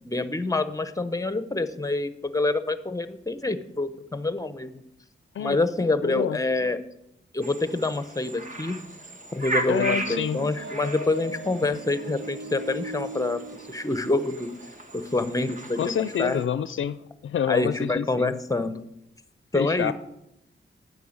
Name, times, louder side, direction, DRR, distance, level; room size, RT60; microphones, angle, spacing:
voice 1, 0.0-4.8 5.4-6.8 7.3-8.8 9.3-13.4 13.7-14.5 14.9-16.4 17.5-18.8 19.5-19.9, left 2 dB, 15° left, 12 dB, 0.8 m, -27 dB
voice 2, 6.0-6.4 9.7-10.4 15.8-18.3 19.5-19.9, left 8 dB, 75° left, 15 dB, 0.4 m, -27 dB
sound 1, 7.4-16.5, right 1 dB, 40° right, 1.4 m, -37 dB
sound 2, 9.6-14.8, right 2 dB, 65° right, 1.0 m, -39 dB
9.2 x 6.4 x 8.7 m, 0.83 s
wide cardioid pair, 100°, 21 cm